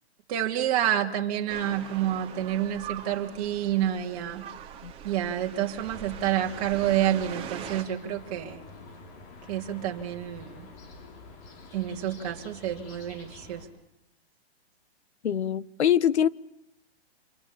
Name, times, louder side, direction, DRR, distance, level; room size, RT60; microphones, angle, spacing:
voice 1, 0.3-4.5 5.0-8.6 9.5-10.7 11.7-13.7, right 11 dB, 35° right, 2.8 m, -28 dB
sound 1, 1.5-7.8, right 9 dB, 15° right, 2.7 m, -42 dB
sound 2, 5.8-13.7, left 3 dB, 30° left, 4.4 m, -47 dB
voice 2, 15.2-16.3, left 9 dB, 85° left, 1.2 m, -23 dB
27.0 x 24.5 x 8.5 m
hypercardioid pair, 160°, 32 cm